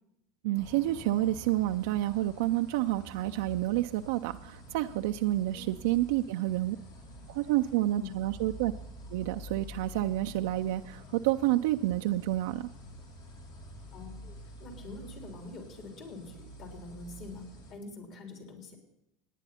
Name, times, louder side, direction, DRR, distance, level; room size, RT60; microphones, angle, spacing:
voice 1, 0.4-6.8 7.3-8.7 9.1-12.7, right 15 dB, 70° right, 7 dB, 0.4 m, -29 dB
sound 1, 0.5-17.7, equal, 85° left, 2.8 m, -48 dB
voice 2, 13.9-17.4 17.7-18.8, left 3 dB, 55° left, 2 dB, 3.7 m, -45 dB
18.5 x 9.8 x 4.3 m, 0.81 s
hypercardioid pair, 90°, 0 cm